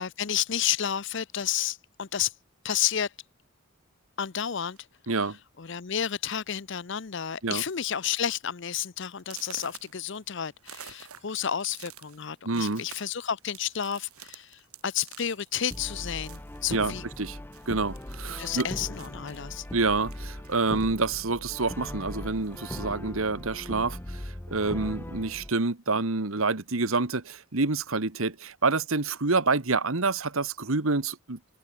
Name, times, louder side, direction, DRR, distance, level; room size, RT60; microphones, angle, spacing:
voice 1, 0.0-2.3 2.6-3.1 4.2-4.8 5.6-17.0 18.4-19.6, left 9 dB, 55° left, 0.7 m, -31 dB
sound 1, 4.7-5.0 5.8-5.9 6.3-6.6 6.9-7.3 7.7-7.8 8.3-8.4 9.2-17.3 17.5-21.2 21.6-22.6, right 9 dB, 90° right, 5.9 m, -50 dB
voice 2, 5.1-5.4 7.4-7.6 12.4-12.8 16.7-17.4 17.7-18.7 19.7-31.4, right 3 dB, 75° right, 1.5 m, -27 dB
Brass instrument, 15.7-25.5, left 1 dB, 10° left, 0.5 m, -39 dB
head